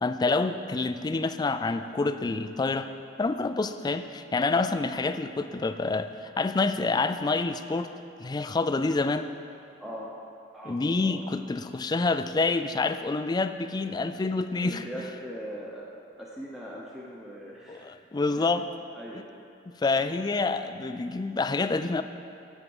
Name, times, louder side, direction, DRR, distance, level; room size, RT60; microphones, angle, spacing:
voice 1, 0.0-2.9 3.2-7.9 8.2-9.3 10.7-14.8 17.7-18.6 19.8-22.0, left 3 dB, 20° left, 10 dB, 0.3 m, -27 dB
voice 2, 9.8-10.1 10.5-11.2 14.6-15.9 16.2-17.9 18.4-18.5 18.9-19.2, equal, ahead, -5 dB, 0.8 m, -40 dB
8.0 x 7.3 x 7.1 m, 2.6 s
head